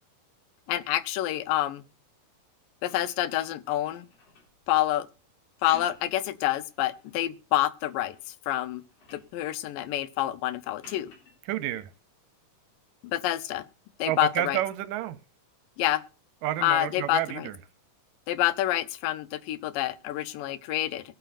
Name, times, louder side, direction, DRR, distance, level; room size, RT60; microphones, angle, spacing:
voice 1, 0.7-1.8 2.8-4.1 4.7-5.1 5.6-8.2 8.5-8.8 9.1-11.1 13.0-13.6 14.0-14.6 15.8-16.0 16.6-17.5 18.3-21.0, left 14 dB, 90° left, 2.4 m, -27 dB
sound 1, 2.8-4.6 5.5-6.2 6.7-7.3 7.8-8.3 8.6-9.3 10.8-11.4 13.1-13.3, left 3 dB, 65° left, 4.7 m, -52 dB
voice 2, 11.5-11.9 14.1-15.2 16.4-17.6, right 14 dB, 85° right, 2.2 m, -30 dB
22.0 x 8.0 x 2.5 m
omnidirectional pair, 3.8 m